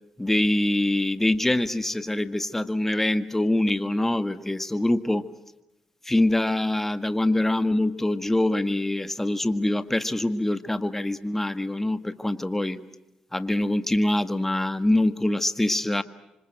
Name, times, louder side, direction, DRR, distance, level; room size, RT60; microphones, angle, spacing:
voice 1, 0.2-5.3 6.1-12.8 13.3-16.0, left 1 dB, 10° left, 11 dB, 1.8 m, -24 dB
27.0 x 25.5 x 7.8 m, 0.90 s
supercardioid pair, 60°, 3 cm